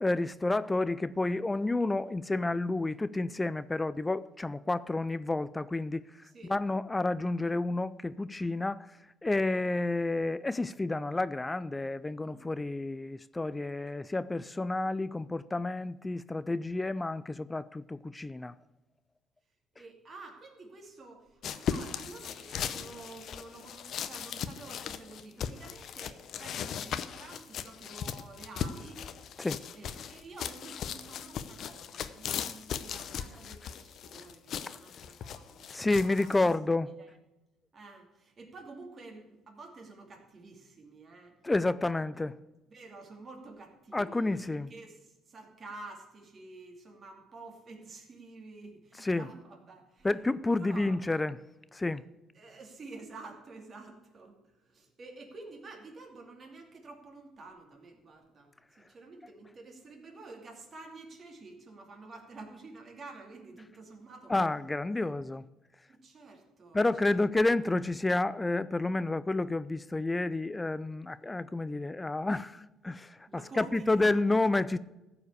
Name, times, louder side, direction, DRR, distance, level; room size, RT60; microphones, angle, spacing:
voice 1, 0.0-6.0 6.5-8.9 9.2-18.5 29.4-29.6 35.7-36.9 41.4-42.4 43.9-44.7 49.0-49.2 50.0-51.4 51.7-52.0 64.3-65.4 66.7-74.8, left 2 dB, 15° left, 0.3 m, -30 dB
voice 2, 6.2-6.6 12.2-12.5 19.7-29.0 29.7-35.7 36.0-36.5 37.0-37.1 37.7-41.3 41.9-42.0 42.7-51.1 52.3-58.5 58.8-64.3 64.9-65.2 65.9-67.2 73.3-74.1, right 3 dB, 35° right, 2.7 m, -49 dB
sound 1, 21.4-36.5, left 8 dB, 55° left, 0.7 m, -38 dB
14.5 x 5.0 x 8.1 m
cardioid pair, 115°, 0 cm